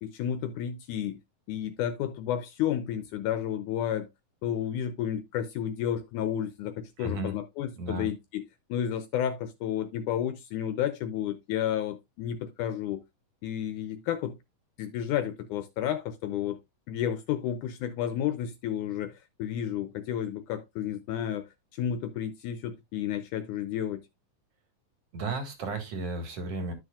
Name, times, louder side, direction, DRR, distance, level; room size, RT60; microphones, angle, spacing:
voice 1, 0.0-1.2 1.5-4.1 4.4-8.4 8.7-13.0 13.4-14.4 14.8-16.6 16.9-21.5 21.7-24.0, left 10 dB, 75° left, 1.9 m, -31 dB
voice 2, 7.0-7.4 7.8-8.1 25.1-26.7, right 2 dB, 50° right, 2.5 m, -34 dB
12.5 x 6.3 x 2.3 m
omnidirectional pair, 4.1 m